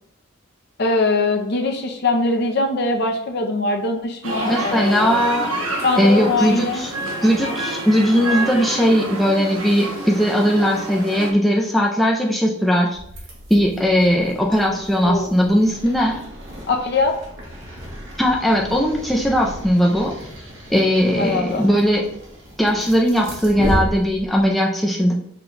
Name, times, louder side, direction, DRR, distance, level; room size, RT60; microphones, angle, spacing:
voice 1, 0.8-5.2 5.8-6.8 15.0-15.3 16.7-17.1 21.1-21.6, left 2 dB, 50° left, 4 dB, 0.6 m, -22 dB
sound 1, 4.2-11.3, right 1 dB, 85° right, 1.0 m, -28 dB
voice 2, 4.4-5.5 6.0-6.9 7.2-13.0 13.5-16.2 18.2-20.1 20.7-22.0 22.6-25.1, equal, ahead, -2 dB, 0.4 m, -18 dB
sound 2, 12.9-24.5, equal, 60° right, 1.4 m, -33 dB
5.8 x 2.3 x 3.8 m, 0.70 s
head